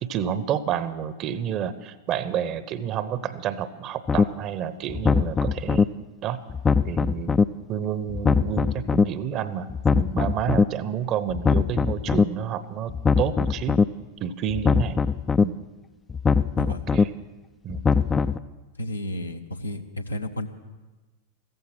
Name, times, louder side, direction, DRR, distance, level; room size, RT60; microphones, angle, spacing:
voice 1, 0.0-5.9 6.2-6.4 6.8-7.4 7.7-13.8 14.2-15.0 15.4-15.6 16.6-17.1 17.6-17.8, right 9 dB, 35° right, 15 dB, 0.8 m, -29 dB
sound 1, 4.1-4.2 4.9-5.8 6.5-7.4 8.1-9.0 9.7-10.6 11.3-12.2 12.9-13.8 14.5-15.4 16.1-17.0 17.7-18.4, left 5 dB, 15° left, 0.4 m, -21 dB
voice 2, 18.8-20.5, left 1 dB, 80° left, 5 dB, 1.0 m, -32 dB
15.5 x 14.5 x 6.0 m, 1.2 s
figure-of-eight pair, 90°, 0 cm